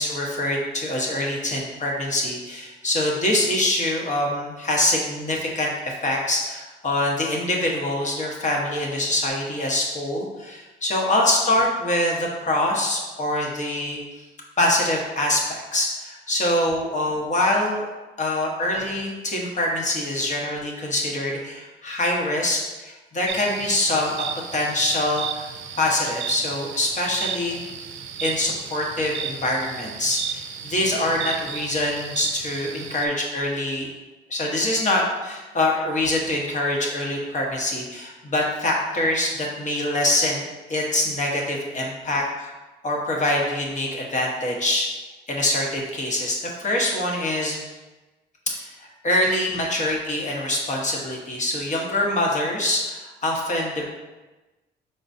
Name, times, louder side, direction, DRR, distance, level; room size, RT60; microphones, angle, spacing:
voice 1, 0.0-14.0 14.6-17.9 18.2-24.2 24.5-25.5 25.8-27.6 28.2-33.9 34.3-40.4 40.7-42.5 42.8-44.9 45.3-47.6 48.5-48.7 49.0-53.8, left 1 dB, 40° left, -1 dB, 1.2 m, -24 dB
sound 1, 23.3-33.1, right 8 dB, 75° right, 0.5 m, -34 dB
5.2 x 3.9 x 2.7 m, 1.2 s
cardioid pair, 90°, 20 cm